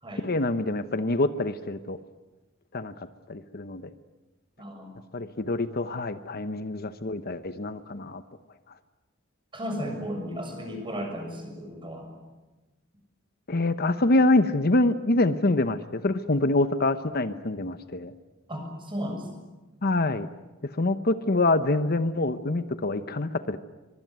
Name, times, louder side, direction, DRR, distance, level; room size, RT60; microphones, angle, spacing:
voice 1, 0.2-2.0 2.7-2.9 3.3-3.9 5.1-8.2 13.5-18.1 19.8-20.3 20.7-23.6, left 2 dB, 50° left, 11 dB, 1.0 m, -25 dB
voice 2, 4.6-4.9 9.5-12.1 18.5-19.3, equal, 25° right, 4 dB, 7.0 m, -34 dB
23.5 x 23.0 x 9.4 m, 1.1 s
head